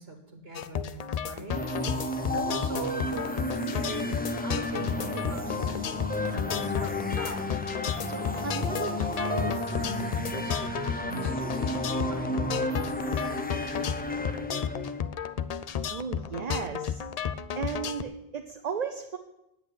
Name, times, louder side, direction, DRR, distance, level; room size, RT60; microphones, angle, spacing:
voice 1, 0.0-1.6 2.3-7.5 8.1-12.9, right 3 dB, 70° right, 2 dB, 1.6 m, -40 dB
sound 1, 0.5-18.0, left 8 dB, 50° left, 0.5 m, -33 dB
sound 2, 1.5-15.0, left 1 dB, 10° left, 0.6 m, -32 dB
voice 2, 15.9-17.0 17.5-19.2, right 6 dB, 45° right, 5 dB, 0.7 m, -34 dB
9.6 x 8.0 x 8.2 m, 0.89 s
omnidirectional pair, 1.1 m